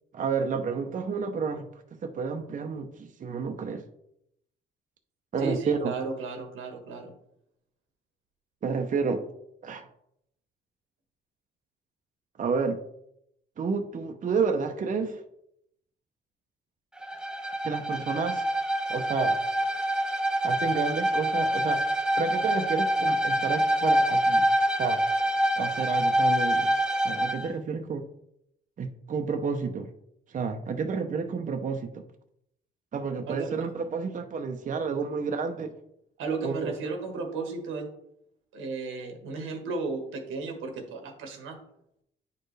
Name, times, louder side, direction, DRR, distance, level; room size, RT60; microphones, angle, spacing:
voice 1, 0.1-3.8 5.3-5.9 8.6-9.2 9.6-9.9 12.4-12.8 13.6-15.2 17.6-18.5 18.9-19.4 20.4-21.8 22.2-24.5 24.8-25.0 25.6-26.8 27.0-28.0 28.8-29.9 30.3-32.0 32.9-35.7 36.4-36.7, right 5 dB, 40° right, 5 dB, 0.7 m, -30 dB
voice 2, 5.4-7.1 33.3-33.5 36.2-37.9 38.5-41.6, right 4 dB, 90° right, 4 dB, 1.4 m, -34 dB
Bowed string instrument, 17.0-27.5, right 1 dB, 5° right, 0.5 m, -26 dB
9.2 x 4.5 x 3.3 m, 0.77 s
cardioid pair, 90°, 20 cm